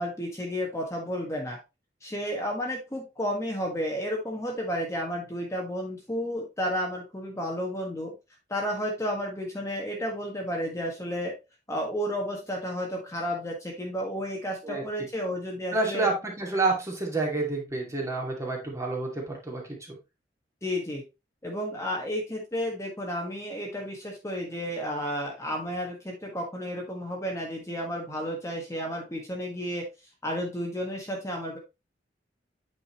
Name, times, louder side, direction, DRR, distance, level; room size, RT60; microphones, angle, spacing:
voice 1, 0.0-1.6 2.0-8.1 8.5-11.3 11.7-16.1 20.6-21.0 21.4-29.8 30.2-31.6, equal, 15° left, 0 dB, 1.6 m, -32 dB
voice 2, 15.7-20.0, right 3 dB, 15° right, -1 dB, 2.4 m, -29 dB
8.9 x 5.3 x 3.1 m, 0.25 s
head